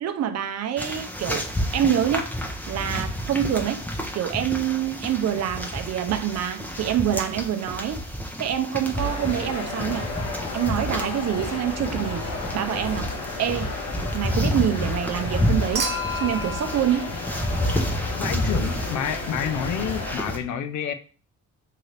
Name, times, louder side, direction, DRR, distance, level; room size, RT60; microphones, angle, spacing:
voice 1, 0.0-2.3 2.7-3.8 4.1-8.0 8.4-10.1 10.5-13.1 13.4-13.7 14.1-15.9 16.2-17.1, right 10 dB, 60° right, 0.5 m, -26 dB
sound 1, 0.8-20.4, equal, 5° left, 0.6 m, -30 dB
sound 2, 9.0-20.2, left 3 dB, 60° left, 0.9 m, -33 dB
Human group actions / Chink clink / Liquid, 15.7-18.1 19.6-19.7, equal, 85° right, 0.9 m, -32 dB
voice 2, 18.1-20.9, left 8 dB, 75° left, 0.5 m, -29 dB
2.7 x 2.4 x 3.2 m
cardioid pair, 90°, 30 cm